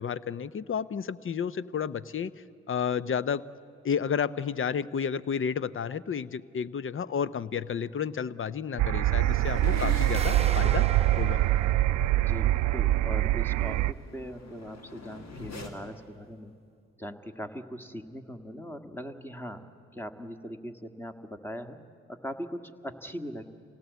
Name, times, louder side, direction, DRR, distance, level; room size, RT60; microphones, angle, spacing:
voice 1, 0.0-2.3 2.7-3.4 3.8-10.9 11.2-11.4 12.0-12.1, left 7 dB, 45° left, 17 dB, 0.7 m, -31 dB
sound 1, 8.8-13.9, right 15 dB, 75° right, 0.5 m, -24 dB
sound 2, 9.0-15.7, left 3 dB, 65° left, 2.6 m, -44 dB
sound 3, 10.1-13.0, right 4 dB, 20° right, 0.8 m, -39 dB
voice 2, 12.2-16.5 17.0-19.7 19.9-21.8 22.1-23.4, equal, 5° left, 6 dB, 1.7 m, -40 dB
26.0 x 18.0 x 8.2 m, 2.4 s
supercardioid pair, 45°, 29 cm